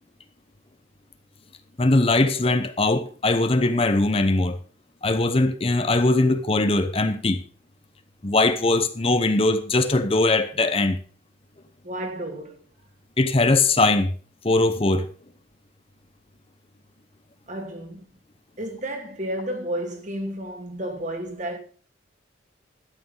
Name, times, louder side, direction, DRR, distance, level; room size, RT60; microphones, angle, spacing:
voice 1, 1.8-4.6 5.0-7.4 8.2-11.0 13.2-14.1 14.4-15.1, left 2 dB, 30° left, 0.8 m, -20 dB
voice 2, 11.8-12.6 17.5-18.0 18.6-21.6, right 1 dB, 40° right, 2.3 m, -32 dB
13.0 x 8.6 x 5.4 m
head